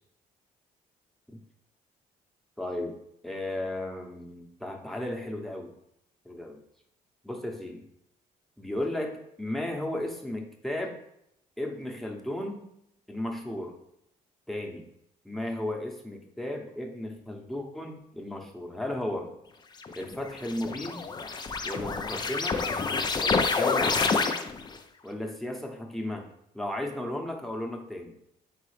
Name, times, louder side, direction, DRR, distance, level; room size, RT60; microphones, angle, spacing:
voice 1, 2.6-3.0 3.2-5.7 6.2-6.6 7.2-7.8 8.6-11.0 11.6-12.7 13.1-13.8 14.5-14.8 15.2-19.3 19.9-21.0 21.6-22.6 23.2-24.4 25.0-26.3 26.5-28.2, left 1 dB, ahead, 2 dB, 0.9 m, -35 dB
sound 1, 19.8-24.8, left 4 dB, 25° left, 0.4 m, -28 dB
4.0 x 3.7 x 3.2 m, 0.76 s
supercardioid pair, 70°, 16 cm